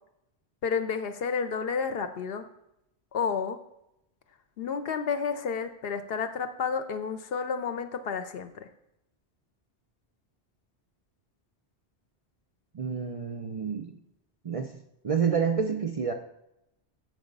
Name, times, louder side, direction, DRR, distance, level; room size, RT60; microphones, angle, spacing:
voice 1, 0.6-2.5 3.1-3.6 4.6-8.7, left 6 dB, 65° left, 9 dB, 0.8 m, -31 dB
voice 2, 12.7-13.9 14.4-14.7 15.0-16.1, right 6 dB, 50° right, 5 dB, 0.4 m, -28 dB
7.9 x 4.8 x 5.2 m, 0.85 s
omnidirectional pair, 1.1 m